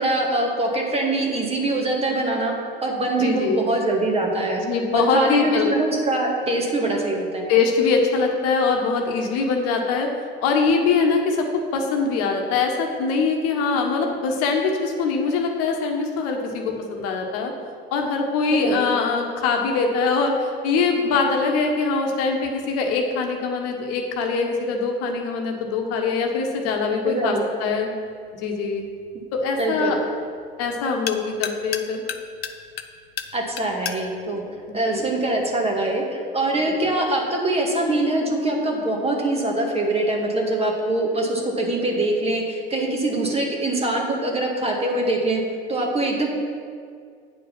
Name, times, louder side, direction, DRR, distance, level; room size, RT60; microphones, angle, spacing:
voice 1, 0.0-2.5 2.8-4.6 4.9-7.4 18.6-18.8 27.0-27.4 29.6-29.9 33.3-34.4 34.7-45.4 45.7-46.3, right 2 dB, 20° right, 0 dB, 1.8 m, -23 dB
voice 2, 3.1-3.6 4.7-5.7 7.5-10.1 10.4-17.5 17.9-27.9 28.4-28.9 29.3-30.0 30.6-32.0 34.7-35.1 36.8-36.9, left 4 dB, 55° left, 2 dB, 1.3 m, -23 dB
sound 1, 28.0-35.6, left 8 dB, 85° left, 0.6 m, -37 dB
9.1 x 5.0 x 5.9 m, 2.2 s
hypercardioid pair, 70°, 30 cm